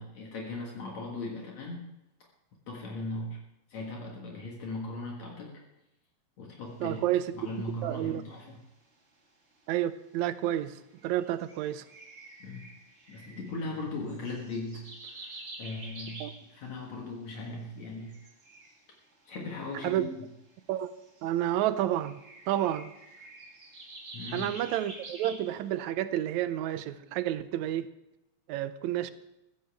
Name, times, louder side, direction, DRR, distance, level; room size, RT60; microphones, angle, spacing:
voice 1, 0.0-1.8 2.7-3.4 3.7-5.5 6.4-7.0 7.4-8.6 12.4-12.7 13.1-18.2 19.2-20.1 24.1-24.5, left 2 dB, 65° left, -1 dB, 2.8 m, -38 dB
voice 2, 6.8-7.3 7.8-8.2 9.7-11.8 16.2-16.3 19.8-20.1 20.7-20.9 21.2-22.2 22.5-22.9 24.3-27.9 28.5-29.1, right 12 dB, 75° right, 13 dB, 1.9 m, -30 dB
sound 1, 10.5-10.6 10.9-16.7 17.8-19.1 19.8-21.5 21.9-25.7, right 2 dB, 30° right, 1.6 m, -48 dB
15.5 x 15.0 x 3.5 m, 0.93 s
omnidirectional pair, 3.5 m